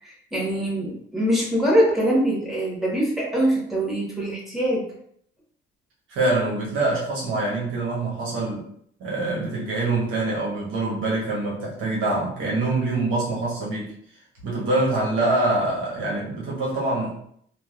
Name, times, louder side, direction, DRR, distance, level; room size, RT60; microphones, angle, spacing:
voice 1, 0.0-4.9, equal, ahead, -6 dB, 1.3 m, -23 dB
voice 2, 6.1-8.7 9.0-13.9 14.4-17.2, right 2 dB, 85° right, -4 dB, 1.2 m, -25 dB
3.1 x 2.4 x 2.4 m, 0.68 s
cardioid pair, 90°, 20 cm